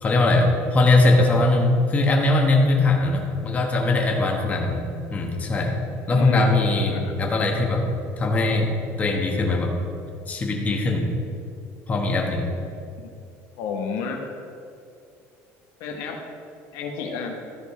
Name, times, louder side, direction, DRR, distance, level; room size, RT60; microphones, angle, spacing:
voice 1, 0.0-4.8 5.1-5.7 6.1-7.8 8.2-8.7 9.0-9.7 10.3-11.1 11.9-12.5, left 2 dB, 25° left, 0 dB, 1.3 m, -20 dB
voice 2, 6.0-6.5 6.9-7.1 13.0-13.1 13.6-14.3 15.8-16.2 16.7-17.4, left 5 dB, 75° left, 2 dB, 1.2 m, -31 dB
13.0 x 5.1 x 4.9 m, 2.5 s
cardioid pair, 135°, 6 cm